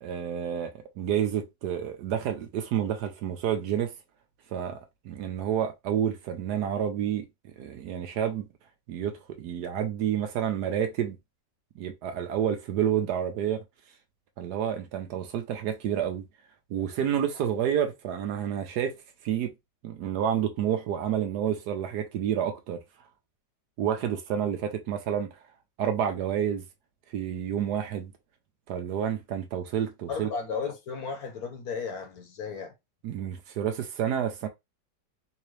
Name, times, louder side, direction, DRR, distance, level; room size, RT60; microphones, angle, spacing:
voice 1, 0.0-3.9 4.5-4.8 5.0-7.3 7.6-8.5 8.9-11.2 11.8-13.6 14.4-16.2 16.7-19.0 19.2-19.5 19.8-22.8 23.8-25.4 25.8-26.6 27.1-28.1 28.7-30.3 33.0-34.5, right 9 dB, 70° right, 1.1 m, -29 dB
voice 2, 30.1-32.7, left 5 dB, 60° left, 1.2 m, -34 dB
3.8 x 2.8 x 3.1 m
omnidirectional pair, 2.0 m